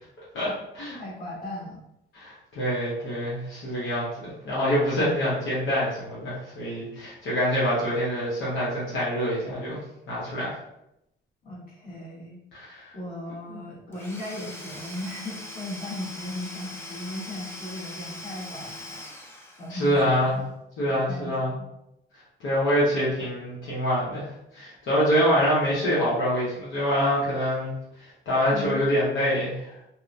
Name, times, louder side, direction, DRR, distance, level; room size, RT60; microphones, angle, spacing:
voice 1, 0.3-1.0 2.1-9.8 10.1-10.5 12.5-12.9 13.5-13.6 19.7-20.4 20.8-21.6 22.4-24.3 24.5-27.7 28.0-29.7, equal, 80° left, -8 dB, 1.0 m, -25 dB
voice 2, 1.0-1.8 11.4-12.4 12.9-19.0 19.6-20.4 20.9-21.7 28.5-28.8, left 1 dB, 50° left, -6 dB, 1.4 m, -37 dB
Domestic sounds home sounds / Tools, 13.9-20.0, left 1 dB, 10° left, 0.5 m, -41 dB
2.8 x 2.2 x 2.5 m, 0.82 s
cardioid pair, 90°, 20 cm